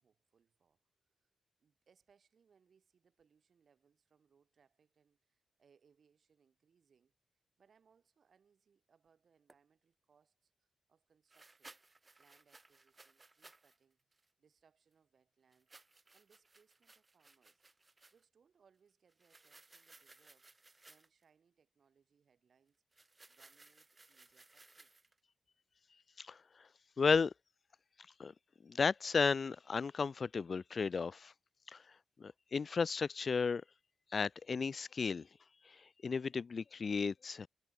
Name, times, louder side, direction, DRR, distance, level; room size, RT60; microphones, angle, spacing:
voice 1, 0.0-11.8 12.2-14.1 14.4-17.7 18.1-22.8 23.3-25.1, right 6 dB, 65° right, 7.6 m, -73 dB
sound 1, 9.5-9.6 11.3-13.8 14.1-14.3 15.5-18.2 19.1-21.2 22.9-25.2, right 3 dB, 30° right, 5.5 m, -62 dB
voice 2, 27.0-27.3 28.2-28.3 28.7-31.3 31.7-31.8 32.2-33.6 34.1-35.3 36.0-37.5, left 5 dB, 55° left, 0.3 m, -34 dB
supercardioid pair, 50°, 0 cm